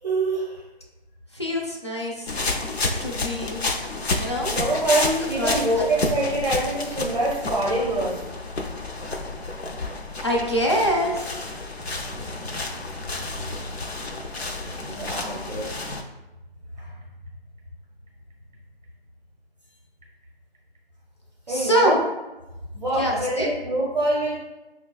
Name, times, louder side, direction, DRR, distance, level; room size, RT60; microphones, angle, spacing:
voice 1, 0.0-0.6 4.5-8.3 14.8-15.7 16.8-16.9 21.5-22.0 22.7-24.4, right 2 dB, 45° right, -3 dB, 0.6 m, -25 dB
voice 2, 1.3-2.5 3.0-3.7 4.1-4.5 5.4-5.5 10.2-11.2 21.5-22.0 23.0-23.5, equal, 30° left, -2 dB, 0.4 m, -24 dB
sound 1, 2.3-16.0, left 2 dB, 80° left, 0.6 m, -30 dB
5.5 x 2.3 x 2.3 m, 1.0 s
figure-of-eight pair, 160°, 31 cm